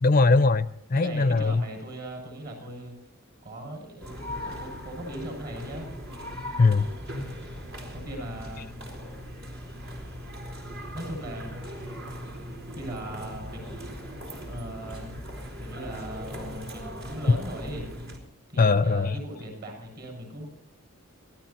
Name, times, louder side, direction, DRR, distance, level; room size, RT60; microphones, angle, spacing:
voice 1, 0.0-1.6 6.6-6.9 18.6-19.1, left 3 dB, 40° left, 0.5 m, -21 dB
voice 2, 0.9-2.9 3.4-5.9 7.9-8.7 10.9-11.5 12.8-13.9 14.4-15.1 15.6-17.9 18.5-20.5, right 1 dB, 45° right, 7.0 m, -38 dB
sound 1, 4.0-18.2, equal, 65° right, 4.2 m, -39 dB
26.5 x 15.5 x 2.9 m
head